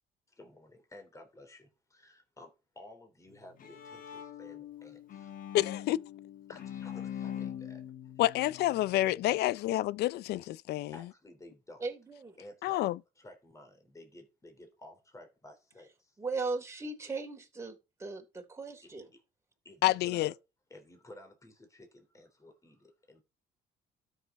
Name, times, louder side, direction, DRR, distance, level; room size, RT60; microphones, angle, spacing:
voice 1, 0.3-5.0 6.5-7.8 10.9-11.9 12.4-16.2 18.8-19.2 19.7-20.4 20.7-23.2, left 1 dB, 20° left, 3.4 m, -54 dB
Bowed string instrument, 3.3-9.4, left 10 dB, 55° left, 1.5 m, -43 dB
voice 2, 5.5-6.0 8.2-10.9 12.6-13.0 19.8-20.3, left 15 dB, 75° left, 0.5 m, -28 dB
voice 3, 11.8-12.4 16.2-19.0, right 3 dB, 15° right, 3.1 m, -38 dB
12.5 x 6.6 x 5.2 m
cardioid pair, 110°, 17 cm